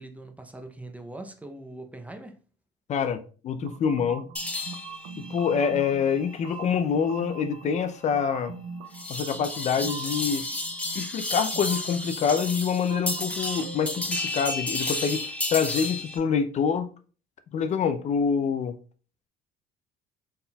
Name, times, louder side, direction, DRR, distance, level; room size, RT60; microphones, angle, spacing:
voice 1, 0.0-2.4, right 2 dB, 10° right, 0.6 m, -41 dB
voice 2, 2.9-4.3 5.2-8.5 9.1-10.5 11.0-16.9 17.5-18.8, left 6 dB, 45° left, 0.4 m, -26 dB
sound 1, 3.6-14.1, right 5 dB, 85° right, 0.5 m, -42 dB
sound 2, 4.4-16.2, left 2 dB, 10° left, 1.1 m, -33 dB
4.2 x 3.6 x 2.2 m
supercardioid pair, 90°, 17 cm